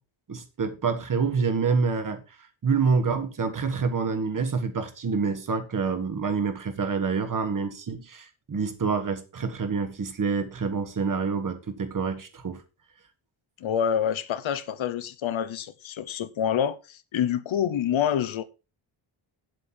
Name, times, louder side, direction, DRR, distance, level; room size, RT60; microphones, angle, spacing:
voice 1, 0.3-2.2 2.6-12.6, right 5 dB, 40° right, 1.5 m, -27 dB
voice 2, 13.6-18.4, left 9 dB, 70° left, 0.9 m, -27 dB
9.2 x 7.7 x 4.5 m
wide cardioid pair, 175°, 49 cm